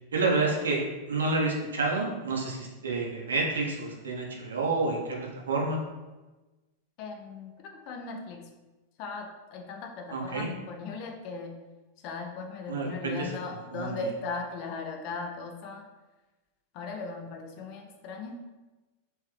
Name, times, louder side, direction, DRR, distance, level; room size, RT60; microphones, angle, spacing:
voice 1, 0.1-0.8 1.1-5.8 10.1-10.5 12.7-13.3 13.7-14.0, right 3 dB, 70° right, -1 dB, 0.8 m, -29 dB
voice 2, 7.0-8.4 9.0-11.5 12.0-15.9 16.7-18.5, left 4 dB, 40° left, 3 dB, 0.6 m, -38 dB
3.4 x 3.0 x 3.3 m, 1.2 s
figure-of-eight pair, 90°, 0 cm